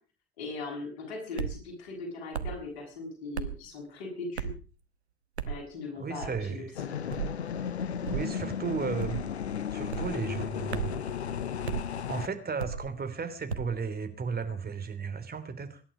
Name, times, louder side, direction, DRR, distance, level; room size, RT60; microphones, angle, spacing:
voice 1, 0.4-4.5 5.5-6.6, left 3 dB, 70° left, 2 dB, 7.7 m, -39 dB
sound 1, 1.4-1.6 2.3-2.6 3.3-3.6 4.4-4.7 5.4-5.6 6.2-6.5 7.1-7.4 8.0-8.3 9.0-9.3 9.9-10.2 10.7-11.0 11.7-11.9 12.6-12.9 13.5-13.8, right 7 dB, 90° right, 1.0 m, -34 dB
voice 2, 6.0-6.8 8.1-9.2 9.7-10.9 11.2-11.4 12.1-15.8, right 5 dB, 30° right, 9 dB, 3.1 m, -34 dB
sound 2, 6.8-12.3, left 8 dB, 85° left, 0.8 m, -34 dB
24.5 x 11.5 x 5.1 m, 0.38 s
figure-of-eight pair, 60°, 32 cm